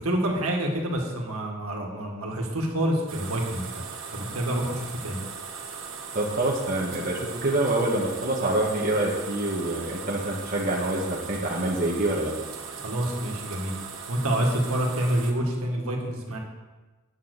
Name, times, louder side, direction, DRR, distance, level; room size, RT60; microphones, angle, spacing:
voice 1, 0.0-3.8 4.1-5.2 12.8-13.8 14.1-16.4, right 1 dB, 80° right, 0 dB, 2.0 m, -27 dB
sound 1, 3.1-15.3, right 5 dB, 60° right, 1.5 m, -39 dB
voice 2, 6.1-12.3, right 1 dB, 40° right, -3 dB, 1.4 m, -26 dB
9.4 x 6.7 x 6.6 m, 1.2 s
head